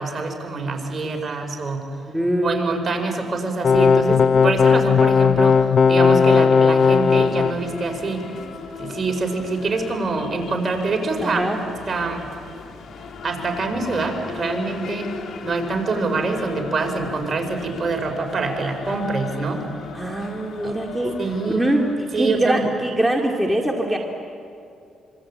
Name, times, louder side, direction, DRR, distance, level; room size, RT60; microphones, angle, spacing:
voice 1, 0.0-1.8 2.4-8.3 8.8-11.4 11.9-12.3 13.2-15.1 15.4-19.7 20.6-20.8 21.2-21.7 22.1-22.7, right 3 dB, 40° right, 4 dB, 5.1 m, -25 dB
voice 2, 2.1-2.8 11.2-11.6 19.9-21.2 21.5-24.0, right 1 dB, 5° right, 0 dB, 2.4 m, -23 dB
sound 1, 3.6-7.5, left 5 dB, 45° left, 0.6 m, -16 dB
sound 2, 6.8-22.0, left 5 dB, 65° left, 3.0 m, -38 dB
26.0 x 25.5 x 8.9 m, 2.6 s
cardioid pair, 90°, 0 cm